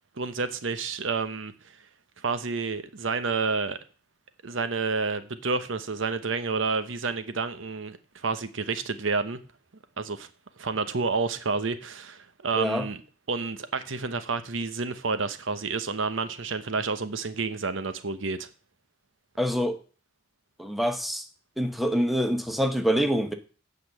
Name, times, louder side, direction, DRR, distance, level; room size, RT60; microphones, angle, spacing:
voice 1, 0.2-1.5 2.2-3.8 4.4-9.4 10.0-10.3 10.6-13.0 13.3-18.5, right 4 dB, 80° right, 0.9 m, -29 dB
voice 2, 12.6-12.9 19.4-19.8 20.6-21.2 21.6-23.3, equal, ahead, 0.9 m, -25 dB
8.4 x 5.4 x 7.7 m
head